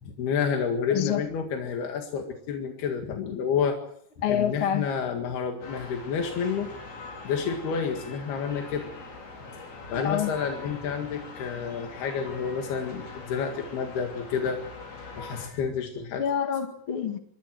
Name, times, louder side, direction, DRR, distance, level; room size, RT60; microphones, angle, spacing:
voice 1, 0.0-3.8 4.3-6.7 7.3-8.9 9.5-14.6 15.2-16.2, left 6 dB, 90° left, 4.0 m, -30 dB
voice 2, 0.9-1.2 4.2-4.9 10.0-10.3 16.2-17.2, left 9 dB, 45° left, 2.1 m, -27 dB
sound 1, 5.6-15.5, left 3 dB, 75° left, 6.5 m, -42 dB
26.5 x 22.5 x 4.7 m
omnidirectional pair, 4.4 m